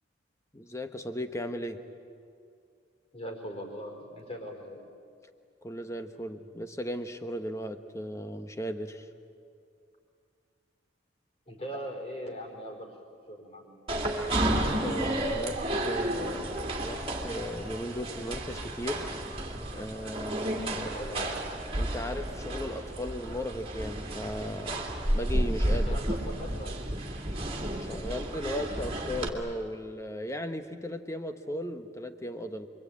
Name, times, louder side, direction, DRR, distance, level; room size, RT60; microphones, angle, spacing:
voice 1, 0.5-1.9 5.6-9.1 14.6-19.2 19.7-20.9 21.7-24.8 25.1-26.0 27.8-32.7, equal, 15° left, 7 dB, 1.2 m, -36 dB
voice 2, 3.1-4.8 11.5-13.0 13.3-13.7 20.7-21.4 25.8-26.9, equal, 35° left, 2 dB, 4.6 m, -40 dB
sound 1, 13.9-29.3, right 1 dB, 30° right, 2.6 m, -32 dB
28.0 x 23.5 x 8.8 m, 2.4 s
head